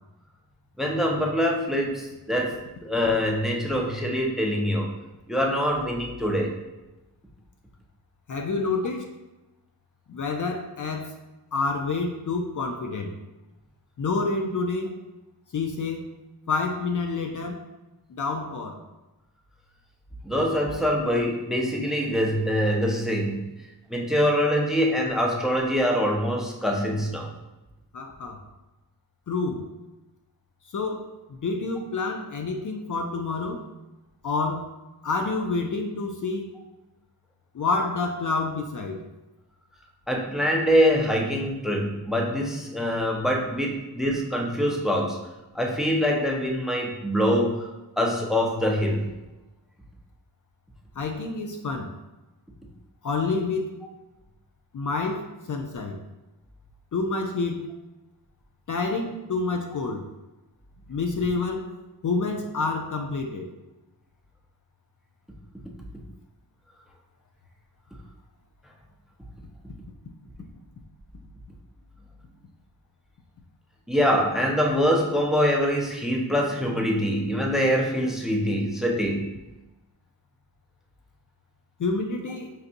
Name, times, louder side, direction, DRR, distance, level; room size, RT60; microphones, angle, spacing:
voice 1, 0.8-2.6 2.8-4.9 5.3-6.6 20.2-23.5 23.9-27.3 40.1-45.2 45.5-47.7 48.0-49.0 73.9-79.3, equal, ahead, 0 dB, 0.6 m, -24 dB
voice 2, 8.3-9.1 10.1-11.1 11.5-13.2 14.0-15.0 15.5-16.0 16.5-17.6 18.1-18.8 27.9-28.4 29.3-29.6 30.7-31.1 31.4-33.6 34.2-34.7 35.0-36.4 37.5-39.1 51.0-51.9 53.0-53.8 54.7-56.0 56.9-57.7 58.7-60.1 60.9-61.7 62.0-63.5 81.8-82.5, left 3 dB, 50° left, 3 dB, 0.5 m, -28 dB
5.3 x 2.6 x 2.5 m, 1.0 s
wide cardioid pair, 80°, 40 cm